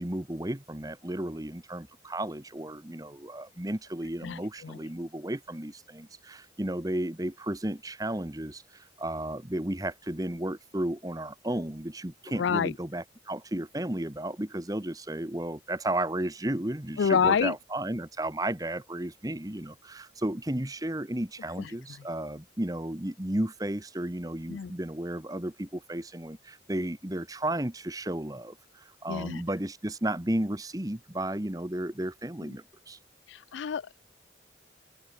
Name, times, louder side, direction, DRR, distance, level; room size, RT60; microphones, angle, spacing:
voice 1, 0.0-33.0, right 1 dB, 20° right, 1.2 m, -33 dB
voice 2, 4.2-4.8 12.4-12.7 17.0-17.5 21.6-21.7 24.5-24.7 29.1-29.4 33.3-34.0, left 6 dB, 85° left, 0.4 m, -27 dB
open air
head